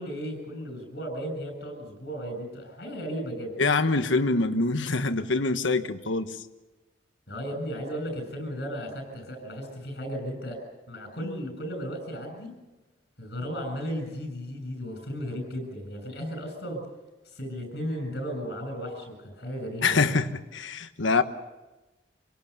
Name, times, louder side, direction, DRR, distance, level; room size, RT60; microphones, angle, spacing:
voice 1, 0.0-3.5 7.3-10.6 10.9-12.5 13.2-16.9 17.2-20.1, equal, 60° left, 7.4 m, -35 dB
voice 2, 3.6-6.4 19.8-21.2, left 3 dB, 85° left, 1.2 m, -25 dB
26.5 x 18.0 x 6.8 m
head